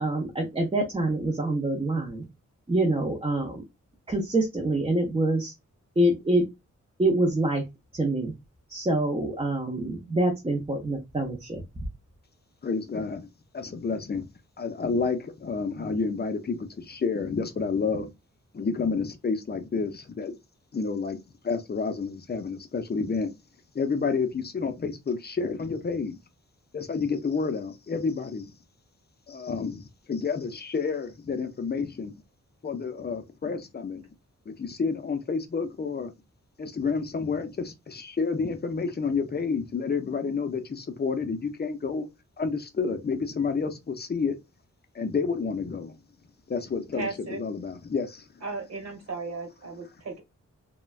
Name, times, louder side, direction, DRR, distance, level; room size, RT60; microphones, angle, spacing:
voice 1, 0.0-2.2 2.7-3.6 4.1-5.5 6.0-6.5 7.0-7.6 7.9-8.3 8.7-11.6, right 1 dB, 20° right, 0.6 m, -26 dB
voice 2, 12.6-13.3 13.5-14.2 14.6-18.1 18.5-20.4 20.7-21.2 21.4-23.3 23.7-26.2 26.7-28.5 29.3-29.8 30.1-32.1 32.6-34.1 34.5-36.1 36.6-42.1 42.4-44.4 44.9-45.9 46.5-47.1 47.4-48.3, left 5 dB, 35° left, 0.5 m, -29 dB
voice 3, 46.9-47.4 48.4-50.2, right 3 dB, 60° right, 1.2 m, -35 dB
3.1 x 2.2 x 2.3 m
wide cardioid pair, 125°, 30 cm